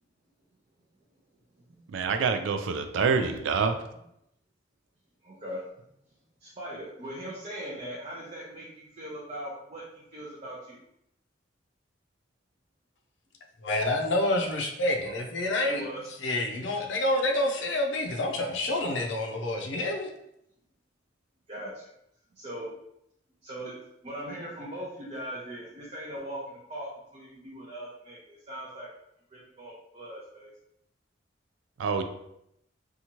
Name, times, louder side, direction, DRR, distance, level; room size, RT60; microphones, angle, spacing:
voice 1, 1.9-3.8 31.8-32.0, right 5 dB, 80° right, 8 dB, 0.3 m, -26 dB
voice 2, 5.2-5.6 6.4-10.8 15.6-16.0 21.5-21.7 22.3-22.7 23.4-23.8 24.0-28.9 29.3-30.5, equal, 35° right, -6 dB, 0.5 m, -40 dB
voice 3, 13.6-15.8 16.2-20.1, left 1 dB, 70° left, 2 dB, 0.5 m, -28 dB
2.7 x 2.3 x 2.9 m, 0.79 s
head